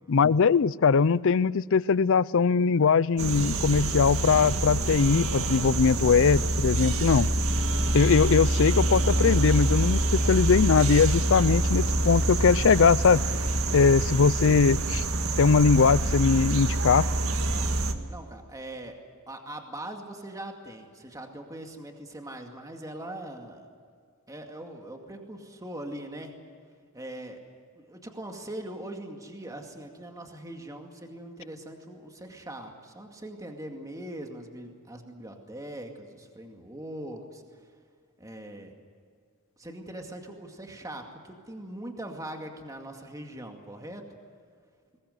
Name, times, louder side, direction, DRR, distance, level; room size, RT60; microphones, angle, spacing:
voice 1, 0.1-7.3 7.9-13.2 13.7-15.0 15.4-17.1, left 5 dB, 65° left, 0.5 m, -21 dB
sound 1, 3.2-17.9, right 1 dB, 75° right, 1.8 m, -26 dB
voice 2, 18.1-19.0 19.3-23.7 24.3-26.3 26.9-27.4 27.8-37.4 38.2-38.7 39.6-44.0, right 1 dB, 15° right, 2.2 m, -41 dB
22.0 x 21.0 x 8.1 m
head